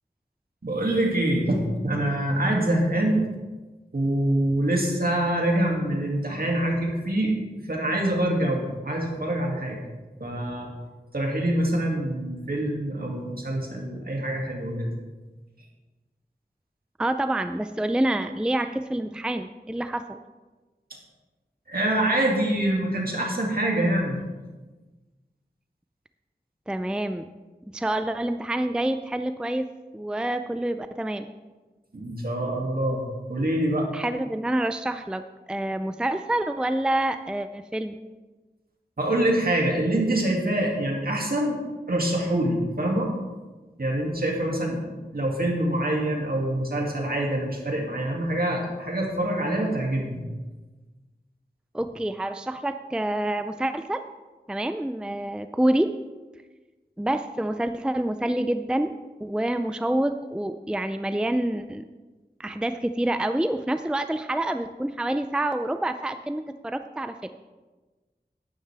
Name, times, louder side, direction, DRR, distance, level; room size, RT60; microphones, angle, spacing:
voice 1, 0.6-3.2 3.9-9.8 10.2-10.7 11.1-14.9 21.7-24.2 31.9-33.0 33.3-33.9 39.0-41.6 41.9-43.1 43.8-50.2, right 1 dB, 60° right, -1 dB, 2.4 m, -25 dB
voice 2, 17.0-20.2 26.7-27.3 27.7-29.7 29.9-31.3 33.9-35.2 35.5-38.0 51.7-54.0 54.5-55.9 57.0-58.9 59.2-61.8 62.4-67.3, right 1 dB, 5° right, 9 dB, 0.4 m, -27 dB
11.5 x 10.5 x 3.4 m, 1.2 s
wide cardioid pair, 55°, 17 cm